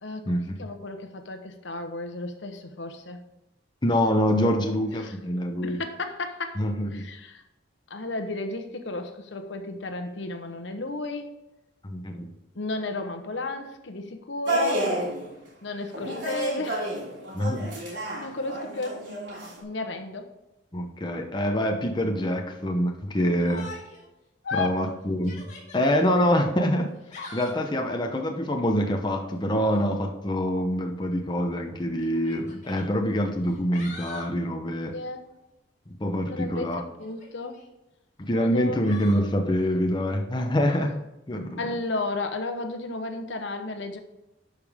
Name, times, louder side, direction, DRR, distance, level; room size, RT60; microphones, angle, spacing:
voice 1, 0.6-3.2 5.0-5.2 5.6-6.6 6.9-7.4 7.9-11.3 12.5-14.9 15.6-16.9 17.7-19.0 19.6-20.3 24.4-24.8 34.9-35.2 36.3-36.7 37.0-37.6 38.3-38.8 41.6-44.0, left 2 dB, 70° left, 6 dB, 1.0 m, -33 dB
voice 2, 3.8-5.8 6.6-7.0 11.8-12.3 17.3-17.7 20.7-23.7 24.5-34.9 36.0-36.8 38.2-41.0 41.3-41.6, equal, 25° left, 2 dB, 0.8 m, -25 dB
sound 1, 14.5-15.3 15.9-19.6, right 1 dB, 80° right, 3.0 m, -30 dB
Yell, 23.4-24.1 24.5-24.6 25.1-26.0 26.9-27.7 29.5-29.9 31.0-31.1 32.0-32.8 33.4-34.3 37.0-37.7 38.8-39.3, left 2 dB, 40° left, 2.1 m, -43 dB
11.5 x 5.2 x 3.6 m, 0.95 s
head